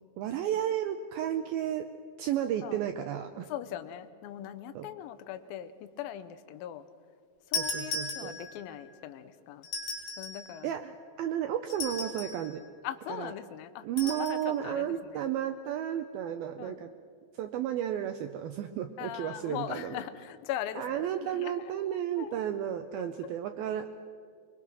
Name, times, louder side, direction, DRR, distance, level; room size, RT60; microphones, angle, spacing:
voice 1, 0.2-1.9 2.2-3.5 4.8-4.9 7.6-8.4 10.6-12.6 13.1-13.3 13.8-16.9 17.4-20.0 20.8-23.9, right 10 dB, 90° right, 7 dB, 2.1 m, -33 dB
voice 2, 3.5-6.9 7.5-9.7 10.2-10.8 12.8-14.9 16.6-16.8 19.0-20.9 21.2-21.7 22.2-22.3, left 11 dB, 80° left, 9 dB, 2.2 m, -40 dB
sound 1, 7.5-8.7 9.6-10.5 11.7-12.5 14.0-14.4, left 3 dB, 50° left, 4.8 m, -36 dB
23.0 x 22.5 x 6.2 m, 2.2 s
omnidirectional pair, 5.1 m